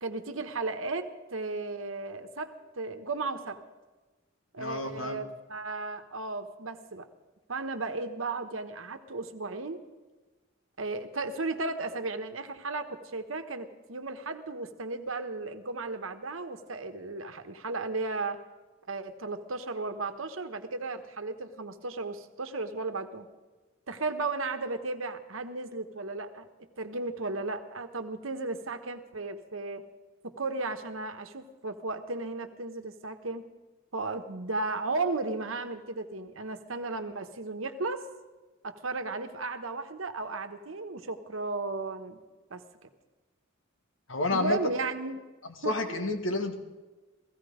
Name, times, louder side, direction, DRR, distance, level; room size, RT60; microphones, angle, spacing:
voice 1, 0.0-3.6 4.5-7.1 7.5-9.8 10.8-18.4 18.9-23.3 23.9-26.5 26.8-29.8 30.2-33.5 33.9-38.1 38.6-42.2 42.5-42.9 44.3-45.2 45.6-46.0, right 3 dB, 75° right, 7 dB, 1.2 m, -35 dB
voice 2, 4.6-5.2 44.1-44.6 45.7-46.6, left 2 dB, 70° left, 6 dB, 1.7 m, -29 dB
16.0 x 16.0 x 5.1 m, 1.2 s
head